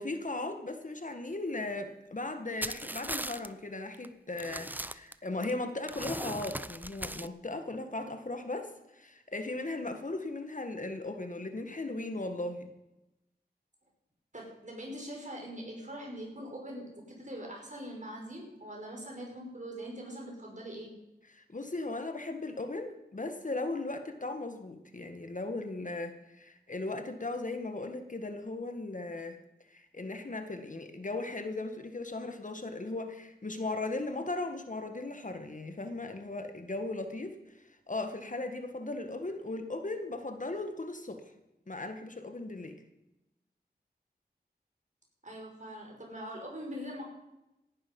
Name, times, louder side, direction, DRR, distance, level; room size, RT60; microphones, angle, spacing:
voice 1, 0.0-12.7 21.3-29.4 29.7-41.3 41.7-42.8, left 2 dB, 50° left, 6 dB, 1.7 m, -37 dB
sound 1, 2.6-3.5 3.9-4.1 4.4-5.5 5.9-7.3, right 1 dB, 10° right, 0.6 m, -38 dB
voice 2, 14.3-20.9 45.2-47.0, equal, 45° right, 0 dB, 5.5 m, -42 dB
17.5 x 11.0 x 5.5 m, 0.94 s
wide cardioid pair, 55°, 17 cm